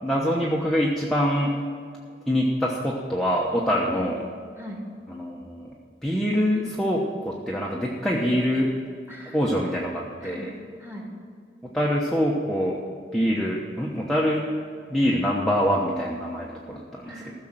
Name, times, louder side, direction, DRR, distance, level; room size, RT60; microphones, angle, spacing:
voice 1, 0.0-1.6 2.3-4.2 5.1-5.7 6.0-8.8 9.3-10.5 11.6-12.8 13.1-14.5 14.9-17.3, equal, 5° left, -4 dB, 1.0 m, -25 dB
voice 2, 4.6-4.9 9.1-9.8 10.2-11.1 17.0-17.3, equal, 15° right, -1 dB, 2.2 m, -40 dB
15.0 x 6.6 x 7.4 m, 2.2 s
head